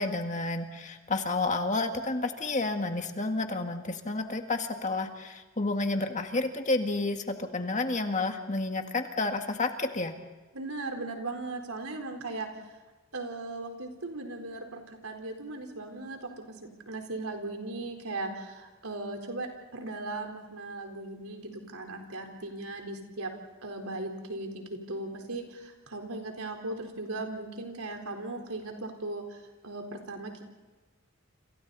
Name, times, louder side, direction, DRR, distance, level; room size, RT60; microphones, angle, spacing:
voice 1, 0.0-10.1, left 2 dB, 35° left, 5 dB, 1.8 m, -30 dB
voice 2, 10.5-12.5 13.1-16.6 16.9-23.3 23.6-30.4, right 2 dB, 90° right, 3 dB, 4.1 m, -38 dB
30.0 x 26.5 x 4.1 m, 1.2 s
head